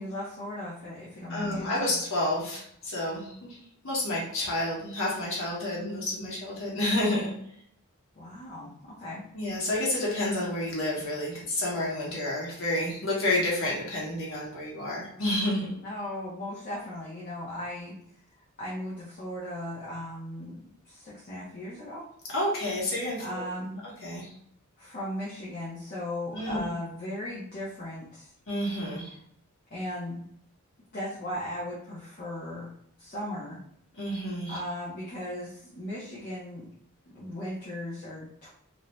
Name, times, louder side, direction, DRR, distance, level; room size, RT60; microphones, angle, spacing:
voice 1, 0.0-2.0 8.2-9.2 15.8-18.0 18.6-22.1 23.2-23.8 24.8-28.3 29.0-29.1 29.7-30.3 30.9-32.7 33.0-33.6 34.5-36.7 37.1-38.5, left 1 dB, 40° left, -7 dB, 0.6 m, -37 dB
voice 2, 1.3-3.3 3.8-7.3 9.3-15.7 22.3-23.4 24.0-24.3 26.3-26.7 28.5-29.1 34.0-34.6, left 1 dB, 65° left, -4 dB, 1.1 m, -29 dB
2.6 x 2.1 x 3.1 m, 0.69 s
head